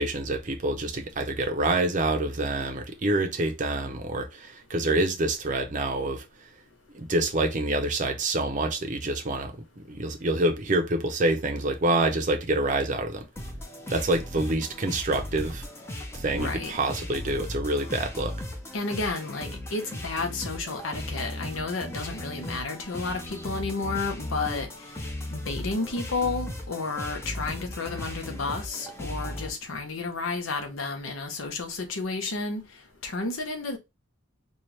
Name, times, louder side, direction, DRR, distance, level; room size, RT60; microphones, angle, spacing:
voice 1, 0.0-6.2 6.9-13.2 13.9-15.7 16.1-18.3, right 2 dB, 35° right, 0.6 m, -27 dB
sound 1, 13.4-29.5, left 1 dB, 10° left, 0.6 m, -37 dB
voice 2, 16.3-16.7 18.7-24.7 25.3-32.6 33.0-33.8, left 3 dB, 70° left, 0.8 m, -31 dB
4.4 x 2.4 x 3.2 m
head